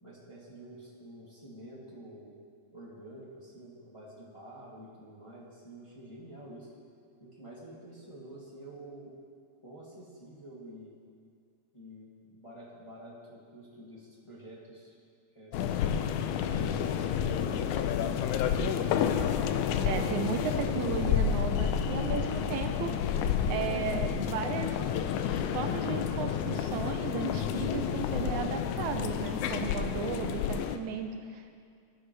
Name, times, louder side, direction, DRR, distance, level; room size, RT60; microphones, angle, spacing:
voice 1, 0.0-2.3 2.7-6.7 7.2-9.1 9.6-11.0 11.7-14.9 15.3-17.8, right 1 dB, 10° left, -7 dB, 2.0 m, -49 dB
sound 1, 15.5-30.8, left 8 dB, 80° left, 2.0 m, -30 dB
voice 2, 19.8-22.9 23.5-24.8 25.5-31.5, right 7 dB, 80° right, 6 dB, 2.0 m, -35 dB
19.0 x 11.5 x 3.3 m, 2.3 s
omnidirectional pair, 3.5 m